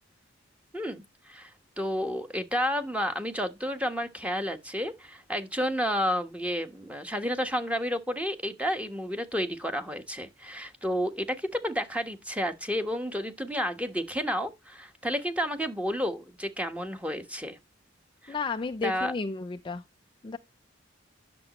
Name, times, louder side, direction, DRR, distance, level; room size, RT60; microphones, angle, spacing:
voice 1, 0.7-1.5 1.8-17.6 18.2-18.3 18.8-19.1, equal, 5° right, 1.3 m, -31 dB
voice 2, 18.3-19.8 20.2-20.4, left 4 dB, 25° left, 0.4 m, -32 dB
10.5 x 6.9 x 3.0 m
head